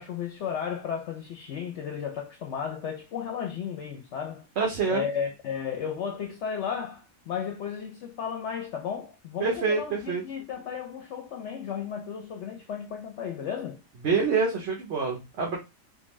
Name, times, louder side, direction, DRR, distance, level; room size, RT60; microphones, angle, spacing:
voice 1, 0.0-4.5 4.9-13.8, left 7 dB, 65° left, 0.8 m, -34 dB
voice 2, 4.6-5.0 9.4-10.2 14.0-15.6, right 5 dB, 60° right, 0.9 m, -26 dB
3.6 x 2.2 x 3.0 m
omnidirectional pair, 1.4 m